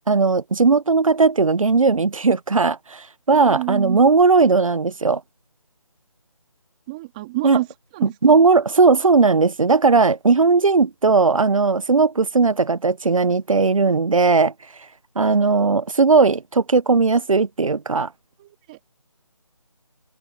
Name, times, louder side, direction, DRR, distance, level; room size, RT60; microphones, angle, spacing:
voice 1, 0.1-5.2 7.4-7.6 8.0-14.5 15.2-18.1, right 4 dB, 65° right, 1.2 m, -17 dB
voice 2, 3.3-4.0 6.9-7.7 7.9-8.4 15.4-15.7 18.4-18.9, right 21 dB, 15° right, 2.8 m, -30 dB
figure-of-eight pair, 170°, 19 cm